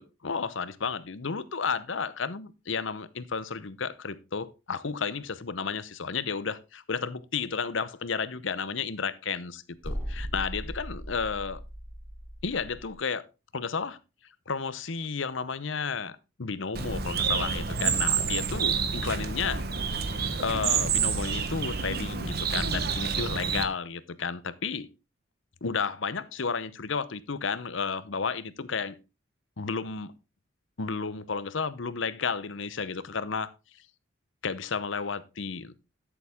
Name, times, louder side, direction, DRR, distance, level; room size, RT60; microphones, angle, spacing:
voice 1, 0.0-11.6 12.4-13.2 13.5-14.0 14.5-19.6 20.4-24.9 25.6-29.0 29.6-30.1 30.8-33.5 34.4-35.8, left 5 dB, 70° left, 0.8 m, -32 dB
sound 1, 9.8-12.9, equal, 5° left, 3.6 m, -38 dB
Bird, 16.7-23.6, right 6 dB, 50° right, 1.1 m, -28 dB
12.5 x 7.0 x 3.6 m
head